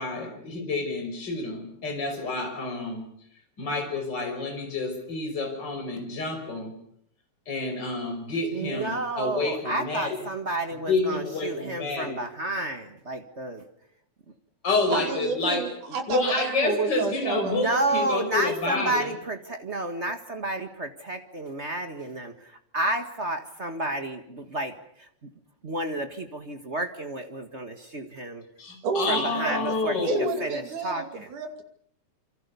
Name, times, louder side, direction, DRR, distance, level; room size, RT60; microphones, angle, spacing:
voice 1, 0.0-3.0 3.6-6.7 7.5-10.2 10.9-12.2 14.6-15.6 16.1-19.1 28.6-30.4, left 3 dB, 35° left, 3 dB, 5.9 m, -29 dB
voice 2, 8.5-13.6 17.5-25.3 25.6-28.4 29.1-30.1 30.4-31.3, right 2 dB, 35° right, 7 dB, 1.2 m, -31 dB
voice 3, 14.9-17.6 28.8-29.8 30.1-31.6, right 5 dB, 90° right, 6 dB, 4.2 m, -30 dB
27.5 x 25.0 x 6.9 m, 0.69 s
omnidirectional pair, 3.4 m